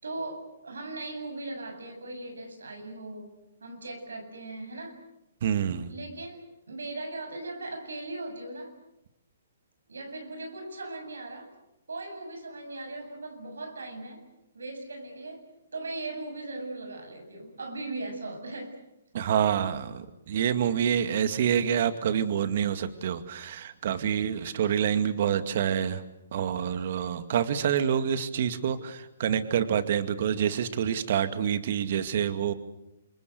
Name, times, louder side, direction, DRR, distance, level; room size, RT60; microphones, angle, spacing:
voice 1, 0.0-5.0 5.9-8.7 9.9-11.5 11.9-14.2 14.5-15.4 15.7-18.8 21.6-21.7, right 2 dB, 90° right, 5 dB, 7.8 m, -38 dB
voice 2, 5.4-5.9 19.1-26.0 26.3-32.5, right 8 dB, 55° right, 10 dB, 2.2 m, -27 dB
28.0 x 24.5 x 8.2 m, 0.88 s
hypercardioid pair, 145°, 0 cm